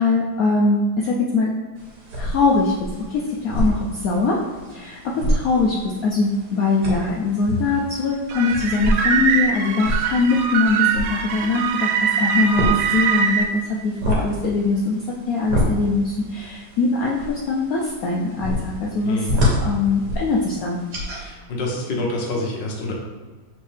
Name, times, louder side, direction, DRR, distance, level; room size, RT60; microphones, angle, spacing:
voice 1, 0.0-1.5 2.2-4.4 4.7-19.3 19.6-20.8, left 3 dB, 85° left, -3 dB, 0.7 m, -22 dB
sound 1, 1.8-21.3, equal, 60° right, 1.5 m, -28 dB
sound 2, 8.3-13.5, right 7 dB, 80° right, 1.3 m, -22 dB
voice 2, 21.1-22.9, left 2 dB, 70° left, -1 dB, 1.5 m, -27 dB
4.3 x 3.5 x 3.3 m, 1.3 s
omnidirectional pair, 2.1 m